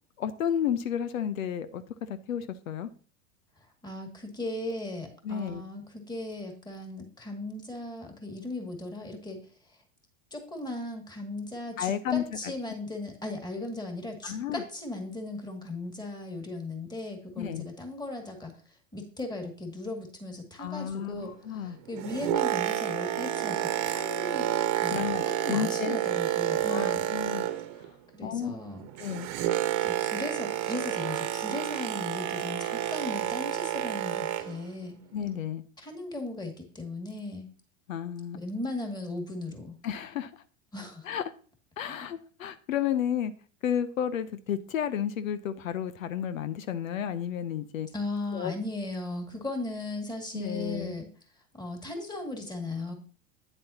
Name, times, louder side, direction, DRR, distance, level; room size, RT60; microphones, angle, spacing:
voice 1, 0.2-1.8 2.1-2.9 5.2-5.6 11.8-12.5 14.2-14.6 17.4-17.7 20.6-21.8 24.9-26.0 26.7-27.5 27.8-27.9 28.2-28.6 29.0-29.3 35.1-35.6 37.9-38.4 39.8-40.3 41.0-41.2 41.8-43.3 43.6-47.9 48.3-48.5 50.3-50.9, left 9 dB, 85° left, 13 dB, 0.7 m, -32 dB
voice 2, 3.8-9.4 10.3-18.5 18.9-24.5 24.8-27.1 28.1-28.9 29.8-35.0 35.8-37.5 38.3-39.8 40.7-41.1 41.9-42.1 47.9-51.1 51.6-52.9, left 2 dB, 10° left, 3 dB, 2.2 m, -37 dB
Boat Water vehicle, 21.8-27.9 28.2-34.6 35.3-35.4, right 12 dB, 45° right, 1.1 m, -30 dB
9.1 x 7.5 x 2.8 m, 0.40 s
hypercardioid pair, 95°, 39 cm